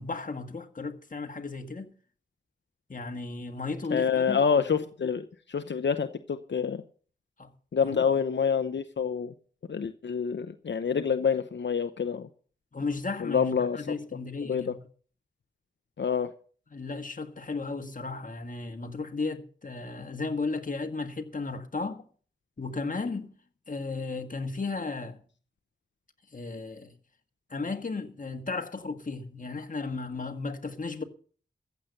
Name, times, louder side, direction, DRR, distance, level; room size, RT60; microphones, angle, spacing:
voice 1, 0.0-1.9 2.9-4.4 7.4-7.5 7.8-8.0 12.7-14.8 16.7-22.0 22.6-23.3 23.7-25.2 26.3-26.9 27.5-31.0, left 3 dB, 45° left, 1.6 m, -34 dB
voice 2, 3.9-6.8 7.7-9.3 9.7-12.3 13.2-13.8 14.4-14.7 16.0-16.3, left 6 dB, 75° left, 0.8 m, -27 dB
15.0 x 8.4 x 6.5 m
wide cardioid pair, 90°, 19 cm